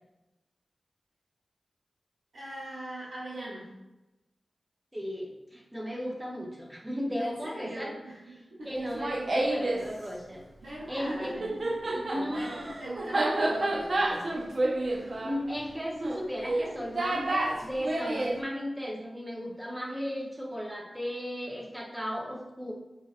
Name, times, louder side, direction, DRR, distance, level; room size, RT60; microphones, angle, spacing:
voice 1, 2.3-3.7 7.2-8.7 10.6-14.5, right 1 dB, 85° right, -11 dB, 1.2 m, -41 dB
voice 2, 4.9-7.9 8.6-10.4 10.9-11.3 11.9-12.7 13.3-13.5 15.2-22.7, equal, 10° right, -4 dB, 0.9 m, -35 dB
Laughter, 8.8-9.8 11.1-18.4, right 2 dB, 50° right, 0.5 m, -29 dB
4.5 x 2.7 x 2.5 m, 1.0 s
wide cardioid pair, 85°, 0 cm